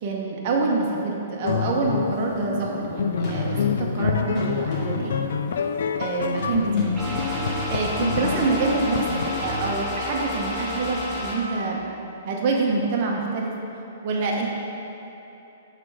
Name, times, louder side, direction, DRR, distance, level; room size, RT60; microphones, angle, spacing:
voice 1, 0.0-5.3 6.0-6.9 7.7-11.8 12.2-13.5 14.0-14.5, right 3 dB, 40° right, -2 dB, 0.9 m, -26 dB
sound 1, 1.4-9.4, left 6 dB, 75° left, 0.3 m, -27 dB
sound 2, 1.5-1.6 3.2-3.9 4.3-5.3 6.4-9.7, left 1 dB, 30° left, 1.4 m, -34 dB
sound 3, 7.0-11.3, left 1 dB, ahead, 1.4 m, -30 dB
7.4 x 3.4 x 4.8 m, 3.0 s
hypercardioid pair, 160°, 0 cm